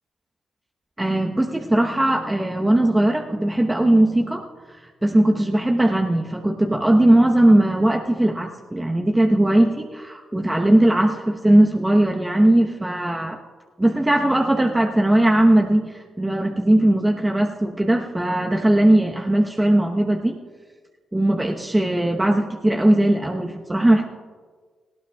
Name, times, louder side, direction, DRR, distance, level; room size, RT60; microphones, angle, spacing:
voice 1, 1.0-4.5 5.0-13.4 13.8-20.4 21.1-24.0, right 1 dB, 15° right, 2 dB, 1.0 m, -19 dB
18.0 x 17.0 x 2.4 m, 1.5 s
hypercardioid pair, 45°, 0 cm